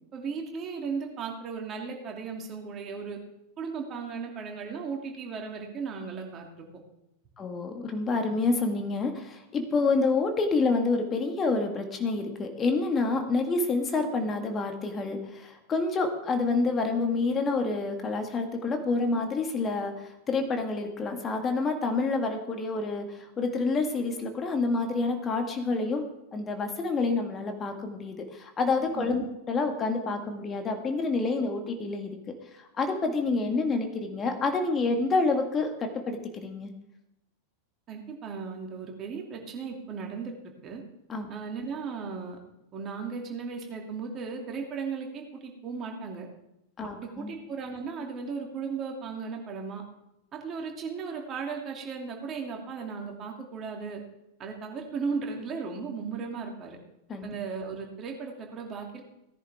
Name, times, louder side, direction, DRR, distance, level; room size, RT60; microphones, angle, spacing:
voice 1, 0.1-3.2 3.6-6.7 28.9-29.3 37.9-40.3 40.6-40.8 41.3-42.4 42.7-46.3 47.0-49.8 50.3-54.0 54.4-56.8 57.2-59.0, right 5 dB, 30° right, 1 dB, 2.7 m, -36 dB
voice 2, 7.4-32.1 32.5-36.7 41.1-41.3 46.8-47.3 57.1-57.3, left 3 dB, 25° left, 4 dB, 1.9 m, -28 dB
17.5 x 10.5 x 3.6 m, 0.86 s
figure-of-eight pair, 90°, 0 cm